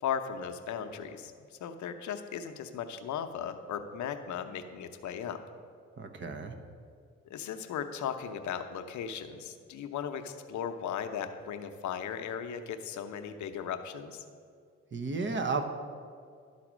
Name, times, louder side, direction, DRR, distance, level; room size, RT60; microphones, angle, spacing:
voice 1, 0.0-5.4 7.3-14.2, left 8 dB, 75° left, 7 dB, 0.7 m, -37 dB
voice 2, 6.0-6.5 14.9-15.6, right 4 dB, 40° right, 6 dB, 0.9 m, -33 dB
12.0 x 4.2 x 6.1 m, 2.2 s
cardioid pair, 90°, 30 cm